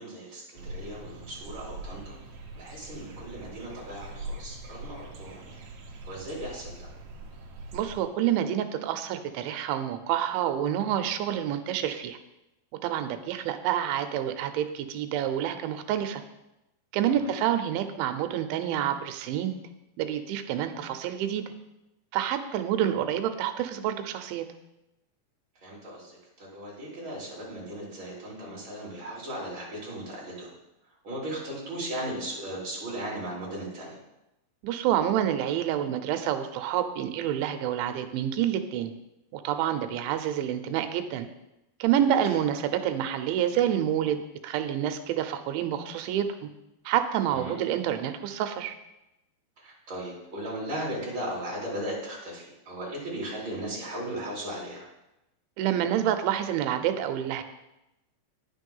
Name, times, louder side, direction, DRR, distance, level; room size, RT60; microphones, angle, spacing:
voice 1, 0.0-2.2 2.5-5.6 6.0-6.9 17.2-17.3 25.6-30.5 31.0-34.0 42.3-42.4 47.3-47.5 49.6-54.9, right 1 dB, 30° right, -5 dB, 3.5 m, -37 dB
sound 1, 0.6-8.0, right 2 dB, 65° right, 2.6 m, -42 dB
voice 2, 7.7-12.2 12.8-16.2 16.9-19.6 20.0-21.4 22.1-24.5 34.6-38.9 39.3-41.3 41.8-46.5 46.9-48.7 55.6-57.4, right 10 dB, 85° right, 8 dB, 3.1 m, -28 dB
9.8 x 6.9 x 5.4 m, 0.91 s
omnidirectional pair, 5.2 m